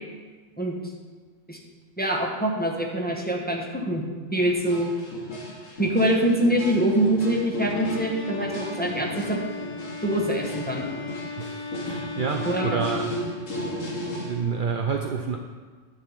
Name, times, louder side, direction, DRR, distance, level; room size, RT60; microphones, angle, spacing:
voice 1, 2.0-4.0 4.3-4.9 5.8-9.4 10.0-10.9 12.4-12.8, right 1 dB, 10° left, -1 dB, 0.9 m, -24 dB
sound 1, 4.5-14.4, left 1 dB, 85° left, 2.0 m, -35 dB
Bowed string instrument, 7.7-13.6, left 4 dB, 55° left, 1.0 m, -37 dB
voice 2, 11.4-13.1 13.9-15.4, right 5 dB, 55° right, 3 dB, 0.6 m, -29 dB
10.0 x 3.9 x 7.2 m, 1.5 s
omnidirectional pair, 1.3 m